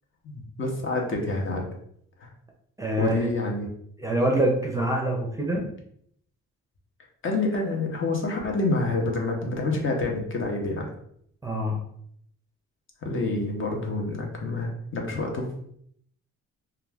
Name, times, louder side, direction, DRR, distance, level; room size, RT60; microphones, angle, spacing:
voice 1, 0.2-1.7 2.2-2.3 3.0-3.7 7.2-10.9 13.0-15.5, left 2 dB, 40° left, 1 dB, 0.7 m, -27 dB
voice 2, 2.8-3.3 4.0-5.6 11.4-11.8, right 1 dB, 10° right, 0 dB, 0.5 m, -25 dB
2.3 x 2.2 x 3.3 m, 0.67 s
cardioid pair, 90°, 30 cm